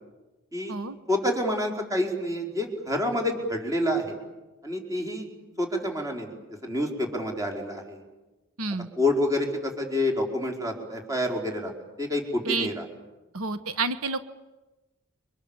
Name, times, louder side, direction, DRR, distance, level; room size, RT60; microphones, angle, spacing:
voice 1, 1.1-4.2 4.6-5.3 5.6-6.3 6.6-8.0 9.0-11.7 12.0-12.8, left 1 dB, 15° right, 1 dB, 4.6 m, -28 dB
voice 2, 8.6-8.9 12.4-12.7 13.3-14.2, right 3 dB, 90° right, 11 dB, 1.2 m, -29 dB
30.0 x 25.0 x 7.3 m, 1.1 s
head